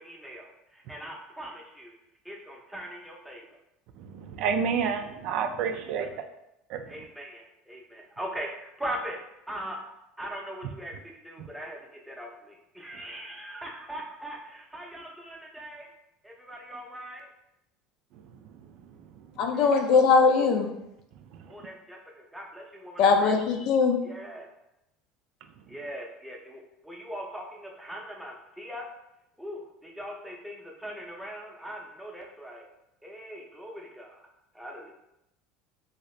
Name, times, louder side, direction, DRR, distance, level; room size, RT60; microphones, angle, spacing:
voice 1, 0.0-1.9 2.2-3.4 6.0-6.1 6.9-9.2 9.5-9.9 10.2-11.8 12.1-15.9 16.2-17.3 19.5-19.7 21.5-23.3 24.0-24.5 25.7-28.9 29.4-32.7 33.0-34.2 34.5-34.9, equal, 5° right, -1 dB, 0.7 m, -40 dB
voice 2, 4.0-6.1 6.7-6.9, right 6 dB, 65° right, 7 dB, 0.3 m, -29 dB
voice 3, 19.4-20.7 23.0-24.0, left 5 dB, 65° left, 3 dB, 0.5 m, -21 dB
2.8 x 2.8 x 3.1 m, 0.85 s
supercardioid pair, 105°, 0 cm